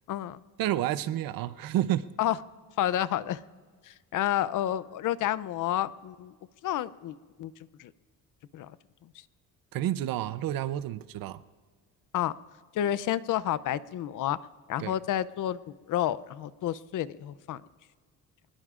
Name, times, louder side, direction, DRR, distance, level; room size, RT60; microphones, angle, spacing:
voice 1, 0.1-0.4 2.2-2.4 2.8-3.4 3.8-6.3 6.6-7.5 7.8-7.9 8.5-8.7 12.1-12.3 12.7-14.4 14.7-15.6 15.9-17.6, left 12 dB, 60° left, 17 dB, 0.6 m, -30 dB
voice 2, 0.6-2.0 9.7-11.4 14.8-14.9, right 12 dB, 70° right, 14 dB, 0.7 m, -30 dB
25.0 x 20.5 x 2.5 m, 1.5 s
cardioid pair, 135°, 36 cm